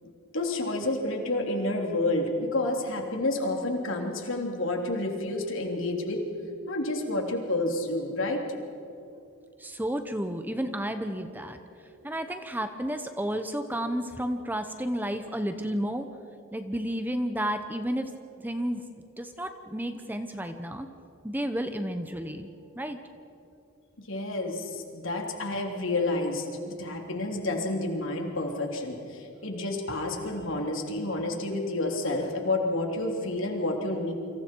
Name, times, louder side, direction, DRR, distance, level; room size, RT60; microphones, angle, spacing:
voice 1, 0.0-6.2 6.7-8.4 24.1-34.1, left 2 dB, 65° left, 2 dB, 3.4 m, -29 dB
voice 2, 9.6-16.1 16.5-18.2 18.4-18.8 19.2-20.9 21.2-23.0, equal, 10° right, 8 dB, 0.9 m, -32 dB
29.0 x 26.0 x 4.7 m, 2.7 s
head